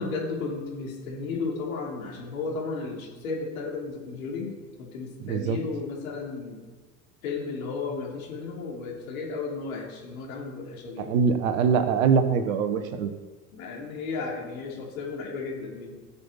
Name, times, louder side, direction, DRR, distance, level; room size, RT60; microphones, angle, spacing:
voice 1, 0.0-4.5 4.8-6.6 7.2-11.1 13.5-16.0, left 4 dB, 65° left, -2 dB, 3.3 m, -34 dB
voice 2, 5.2-5.6 11.0-13.1, right 6 dB, 65° right, 10 dB, 1.3 m, -23 dB
17.5 x 7.1 x 4.5 m, 1.3 s
figure-of-eight pair, 75°, 45 cm